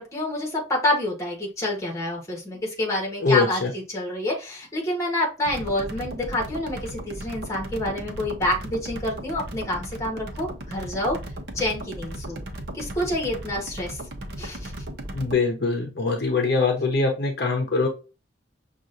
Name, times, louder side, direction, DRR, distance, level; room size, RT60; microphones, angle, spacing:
voice 1, 0.0-11.2 11.5-12.4 12.7-14.0 14.4-14.7, left 1 dB, 15° left, 0 dB, 1.4 m, -28 dB
voice 2, 3.2-3.7 15.1-17.9, left 4 dB, 55° left, 3 dB, 0.8 m, -23 dB
sound 1, 5.4-15.4, right 1 dB, 60° right, 0.8 m, -36 dB
6.0 x 2.5 x 2.5 m, 0.30 s
head